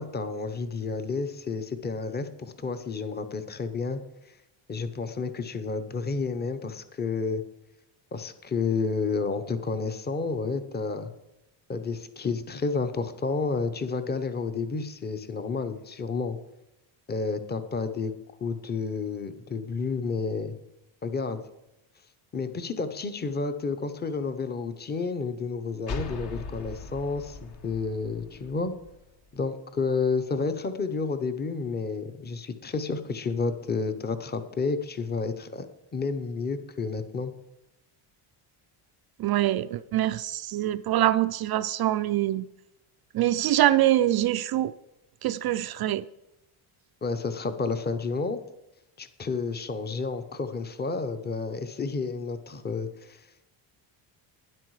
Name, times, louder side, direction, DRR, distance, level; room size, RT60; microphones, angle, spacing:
voice 1, 0.0-4.0 4.3-4.4 4.7-7.4 8.1-11.1 11.7-16.4 17.1-18.1 18.4-20.6 21.0-21.4 22.3-28.7 29.3-35.7 35.9-37.3 47.0-48.4 49.0-53.3, left 4 dB, 20° left, 0.9 m, -30 dB
sound 1, 25.9-29.4, left 3 dB, 50° left, 1.4 m, -39 dB
voice 2, 39.2-42.5 43.1-44.7 45.2-46.0, right 13 dB, 50° right, 0.5 m, -24 dB
12.0 x 10.5 x 4.8 m
cardioid pair, 140°, 49 cm